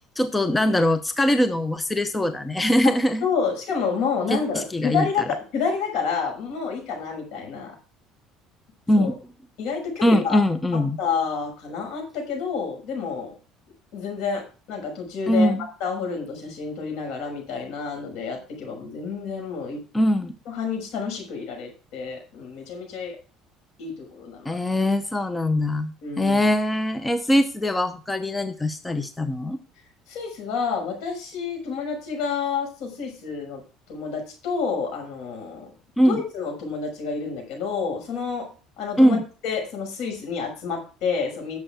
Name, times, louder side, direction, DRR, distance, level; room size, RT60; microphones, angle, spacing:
voice 1, 0.2-3.2 4.3-5.1 8.9-9.1 10.0-11.0 15.3-15.6 19.9-20.3 24.4-29.6 36.0-36.2 39.0-39.2, left 1 dB, 10° left, 10 dB, 0.7 m, -22 dB
voice 2, 3.2-7.7 9.0-9.1 9.6-10.4 10.7-13.3 13.9-15.5 15.8-19.8 20.5-23.2 23.8-24.6 26.0-26.4 30.1-33.6 33.9-35.7 36.1-38.5 38.8-39.2 39.4-41.6, left 5 dB, 70° left, 2 dB, 6.1 m, -29 dB
11.5 x 7.1 x 4.5 m, 0.35 s
cardioid pair, 130°, 0 cm